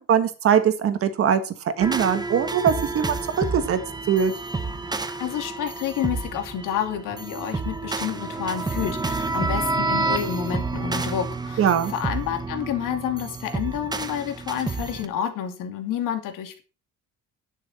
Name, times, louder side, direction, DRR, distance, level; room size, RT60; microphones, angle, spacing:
voice 1, 0.1-3.8 4.1-4.3 11.6-11.9, right 8 dB, 45° right, 10 dB, 1.7 m, -21 dB
sound 1, 1.8-15.1, right 3 dB, 15° right, 1.0 m, -29 dB
voice 2, 5.2-16.6, left 9 dB, 90° left, 6 dB, 2.8 m, -29 dB
11.0 x 10.0 x 4.4 m, 0.33 s
cardioid pair, 175°, 31 cm